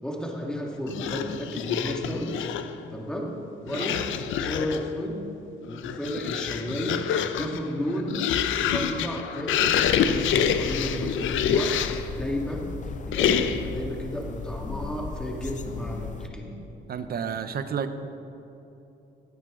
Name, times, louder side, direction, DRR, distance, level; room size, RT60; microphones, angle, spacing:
voice 1, 0.0-2.5 2.9-3.3 3.6-4.1 4.4-5.2 5.7-7.0 7.4-8.2 8.6-11.7 12.1-12.7 13.1-16.5, equal, 5° left, -1 dB, 2.1 m, -33 dB
sound 1, 0.9-2.8 3.7-4.9 5.6-12.1 13.1-13.8, left 8 dB, 75° left, 0.6 m, -27 dB
sound 2, 9.8-16.3, left 5 dB, 40° left, 0.7 m, -37 dB
voice 2, 16.9-18.1, right 7 dB, 50° right, 10 dB, 0.8 m, -31 dB
16.5 x 9.1 x 3.8 m, 2.9 s
cardioid pair, 90°, 20 cm